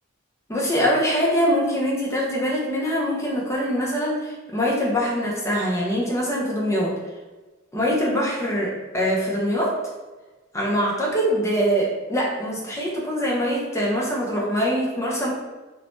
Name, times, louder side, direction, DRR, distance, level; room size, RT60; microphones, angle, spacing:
voice 1, 0.5-6.9 7.7-9.8 10.5-15.3, equal, 15° left, -4 dB, 0.6 m, -23 dB
2.6 x 2.1 x 2.9 m, 1.2 s
head